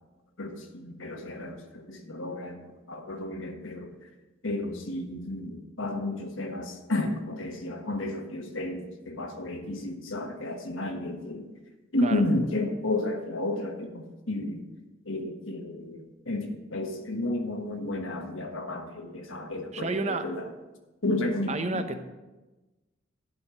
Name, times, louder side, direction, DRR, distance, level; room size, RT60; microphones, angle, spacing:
voice 1, 0.4-2.6 2.9-3.9 4.4-11.5 11.9-14.6 15.0-20.5 21.0-21.8, left 2 dB, 80° left, 4 dB, 1.3 m, -32 dB
voice 2, 19.7-20.2 21.5-22.0, right 3 dB, 35° right, 8 dB, 0.7 m, -30 dB
11.0 x 5.3 x 6.2 m, 1.1 s
head